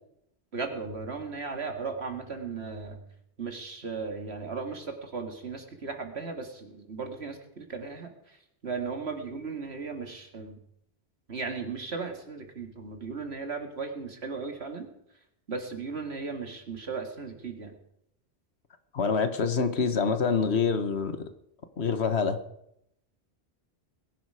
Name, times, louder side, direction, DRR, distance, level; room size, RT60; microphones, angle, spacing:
voice 1, 0.5-3.0 3.4-8.4 8.6-10.6 11.3-14.9 15.5-17.8, right 4 dB, 75° right, 4 dB, 2.4 m, -36 dB
voice 2, 18.9-21.3 21.8-22.4, left 5 dB, 75° left, 9 dB, 1.6 m, -26 dB
21.0 x 11.0 x 4.9 m, 0.77 s
omnidirectional pair, 1.1 m